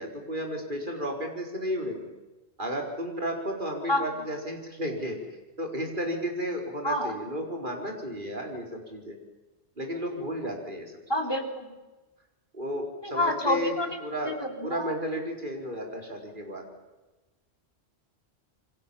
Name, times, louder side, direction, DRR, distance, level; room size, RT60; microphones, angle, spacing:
voice 1, 0.0-2.1 2.6-9.2 9.8-11.0 12.5-13.7 14.0-16.6, equal, 50° right, 2 dB, 5.0 m, -33 dB
voice 2, 6.8-7.1 11.1-11.7 13.0-13.9 14.3-14.9, left 1 dB, 25° left, 4 dB, 3.5 m, -28 dB
28.0 x 23.5 x 7.2 m, 1.1 s
omnidirectional pair, 1.1 m